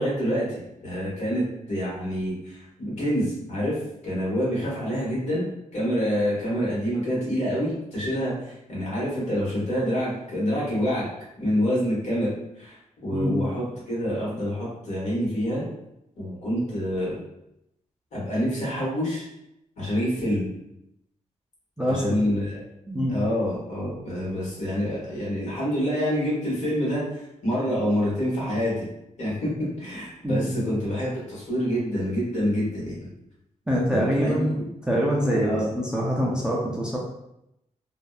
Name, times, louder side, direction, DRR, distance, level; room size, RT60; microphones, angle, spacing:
voice 1, 0.0-3.8 4.0-5.4 5.7-11.1 11.4-12.3 12.6-15.6 16.2-17.2 18.1-19.2 19.8-20.5 21.9-22.6 23.1-28.8 29.2-29.5 29.8-33.0 33.9-34.5 35.4-35.7, equal, 60° left, -6 dB, 1.2 m, -27 dB
voice 2, 13.1-13.5 21.8-22.2 22.9-23.2 30.2-30.7 33.7-37.0, equal, 5° right, -4 dB, 0.3 m, -25 dB
2.5 x 2.1 x 2.3 m, 0.83 s
wide cardioid pair, 170°, 13 cm